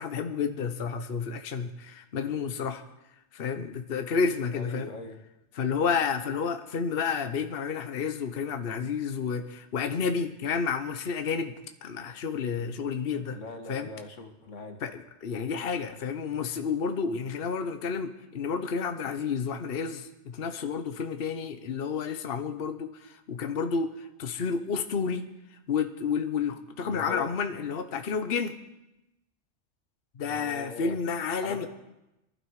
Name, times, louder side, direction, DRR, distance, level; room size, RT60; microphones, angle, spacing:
voice 1, 0.0-2.8 3.3-4.9 5.5-11.5 11.8-13.4 13.7-13.9 14.8-25.3 25.7-28.6 30.2-31.7, left 5 dB, 55° left, 8 dB, 1.1 m, -30 dB
voice 2, 4.5-5.2 13.3-14.8 26.8-27.3 30.3-30.9 31.4-31.7, left 4 dB, 90° left, 5 dB, 1.9 m, -40 dB
23.0 x 12.0 x 4.8 m, 0.94 s
omnidirectional pair, 1.2 m